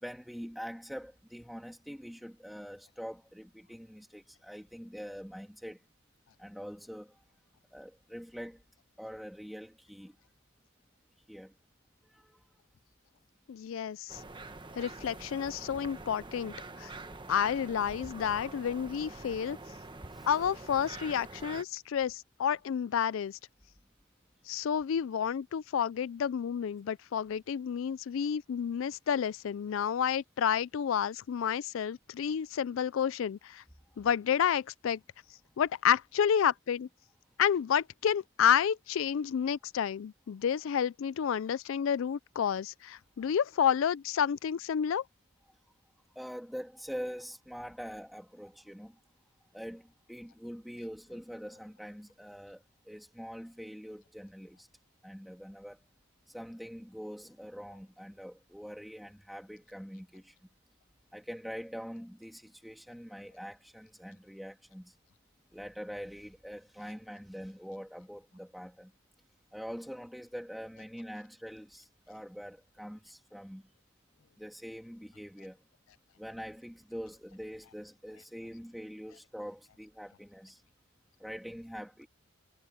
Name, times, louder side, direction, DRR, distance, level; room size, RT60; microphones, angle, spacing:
voice 1, 0.0-5.8 6.4-7.2 7.7-8.6 9.0-10.2 11.3-11.5 12.1-12.4 16.7-17.3 20.1-20.3 46.1-48.9 49.5-54.7 55.0-55.8 56.3-60.4 61.1-64.9 65.5-68.9 69.5-73.6 74.4-75.6 76.2-80.6 81.2-82.1, equal, ahead, 2.6 m, -44 dB
voice 2, 13.5-14.2 14.8-16.9 17.3-19.6 20.3-23.4 24.5-33.6 34.0-35.0 35.6-36.9 37.4-45.0, left 8 dB, 70° left, 0.3 m, -30 dB
sound 1, 14.1-21.6, right 2 dB, 20° right, 1.2 m, -46 dB
head